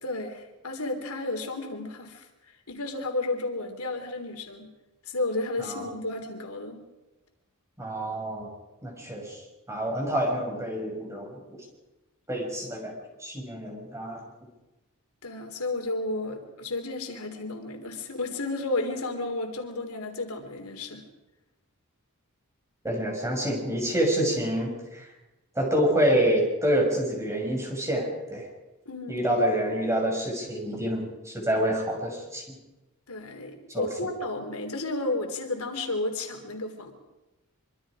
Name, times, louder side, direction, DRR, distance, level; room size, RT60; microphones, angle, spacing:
voice 1, 0.0-2.3 2.7-4.7 5.1-6.8 15.2-21.0 28.9-29.7 33.1-36.9, left 2 dB, 85° left, 4 dB, 3.5 m, -32 dB
voice 2, 7.8-8.5 8.8-9.4 9.7-11.4 12.3-12.9 13.2-14.2 22.8-25.0 25.6-28.4 29.1-32.4 33.7-33.9, equal, 15° right, 0 dB, 6.3 m, -27 dB
25.5 x 24.5 x 5.0 m, 1.0 s
head